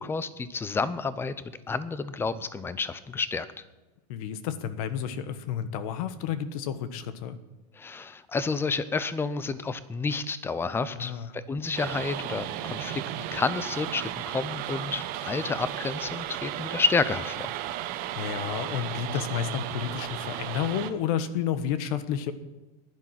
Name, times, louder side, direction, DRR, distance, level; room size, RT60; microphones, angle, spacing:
voice 1, 0.0-1.3 1.7-3.5 7.7-17.5, left 4 dB, 10° left, 15 dB, 0.6 m, -30 dB
voice 2, 4.1-7.4 10.9-11.3 18.2-22.3, left 9 dB, 60° left, 13 dB, 1.3 m, -31 dB
sound 1, 11.8-20.9, right 12 dB, 45° right, 1.2 m, -35 dB
15.5 x 11.0 x 5.9 m, 1.1 s
supercardioid pair, 145°, 21 cm